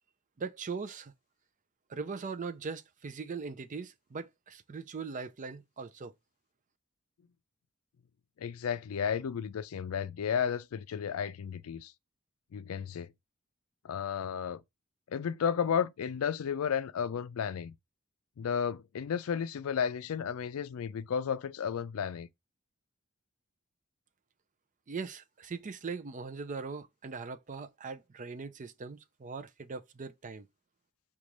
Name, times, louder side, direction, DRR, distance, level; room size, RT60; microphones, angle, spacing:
voice 1, 0.4-1.1 1.9-6.1 24.9-30.5, right 4 dB, 35° right, 0.4 m, -40 dB
voice 2, 8.4-11.9 12.5-13.1 13.8-14.6 15.1-17.7 18.4-22.3, left 7 dB, 80° left, 0.4 m, -33 dB
5.1 x 2.4 x 3.0 m
head